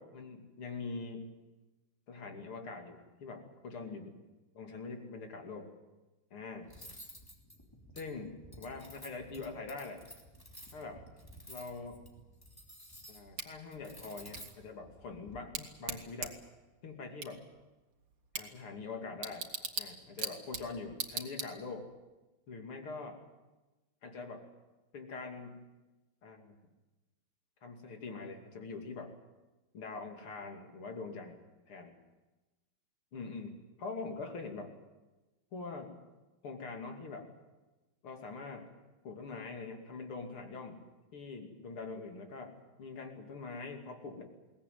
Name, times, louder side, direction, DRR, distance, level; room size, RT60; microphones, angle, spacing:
voice 1, 0.0-1.3 2.1-4.2 4.6-5.7 6.3-6.7 8.0-10.0 10.7-11.0 11.5-12.0 13.1-16.4 16.8-17.4 18.4-19.5 19.8-21.9 22.5-23.2 24.0-24.5 24.9-25.6 26.2-26.5 27.6-29.1 29.7-31.4 31.7-31.9 33.1-34.7 35.5-36.0 36.4-37.3 38.0-38.7 39.0-40.9 41.1-44.2, left 4 dB, 85° left, 4 dB, 3.5 m, -44 dB
Cutlery silverware, 6.7-15.4, equal, 10° left, 2.9 m, -53 dB
Bicycle / Tick, 13.4-21.9, right 5 dB, 75° right, 2.8 m, -43 dB
22.0 x 18.5 x 9.4 m, 1.1 s
omnidirectional pair, 2.3 m